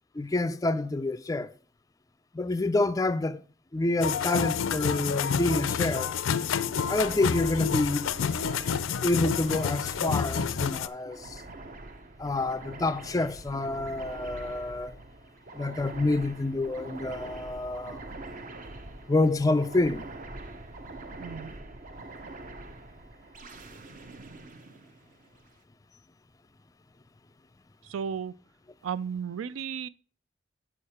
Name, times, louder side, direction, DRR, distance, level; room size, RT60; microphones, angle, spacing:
voice 1, 0.2-1.5 2.3-3.4 3.7-6.2 6.9-8.1 9.0-11.4 12.2-15.0 15.5-18.0 19.1-20.1, left 2 dB, 15° left, 0.3 m, -28 dB
sound 1, 4.0-10.9, left 7 dB, 85° left, 0.4 m, -29 dB
sound 2, 6.6-25.5, right 2 dB, 40° right, 0.7 m, -44 dB
voice 2, 21.2-21.5 27.8-28.3 28.8-29.9, right 7 dB, 85° right, 0.4 m, -34 dB
7.3 x 6.6 x 4.3 m
head